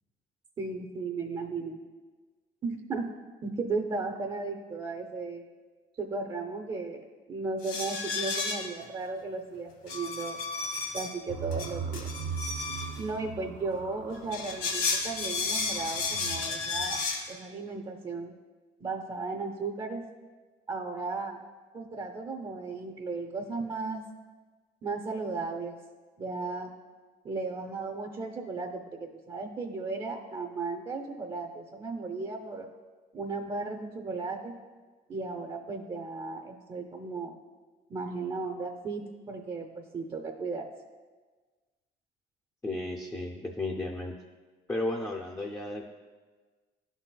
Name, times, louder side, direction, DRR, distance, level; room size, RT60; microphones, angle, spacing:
voice 1, 0.6-1.8 2.6-3.1 3.4-5.4 6.0-10.4 10.9-12.1 13.0-17.0 17.3-18.3 18.8-20.0 20.7-21.4 21.7-24.0 24.8-25.8 26.2-26.7 27.2-32.7 33.1-34.5 35.1-37.4 37.9-40.7, right 3 dB, 30° right, 3 dB, 0.5 m, -35 dB
sound 1, 7.6-8.8 9.9-11.1 11.5-13.0 14.2-17.2, left 4 dB, 65° left, 1.2 m, -32 dB
sound 2, 11.3-17.0, right 6 dB, 75° right, 1.2 m, -40 dB
voice 2, 42.6-44.1 44.7-45.9, left 2 dB, 15° left, 0 dB, 0.5 m, -33 dB
11.5 x 4.0 x 2.2 m, 1.4 s
cardioid pair, 110°, 17 cm